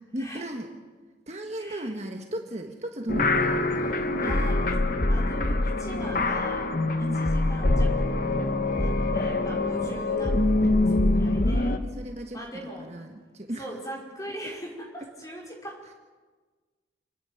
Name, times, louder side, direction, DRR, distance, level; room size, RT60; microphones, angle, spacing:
voice 1, 0.1-0.7 1.3-4.7 7.0-7.2 11.8-12.4 12.8-13.7, right 1 dB, 35° right, 3 dB, 1.5 m, -35 dB
voice 2, 1.6-1.9 4.2-4.8 5.1-6.7 7.0-8.2 8.8-11.8 12.3-12.9 13.6-15.8, right 1 dB, 20° left, -2 dB, 5.3 m, -40 dB
sound 1, 3.1-11.8, left 2 dB, 50° left, 1.1 m, -24 dB
28.5 x 10.0 x 9.3 m, 1.4 s
head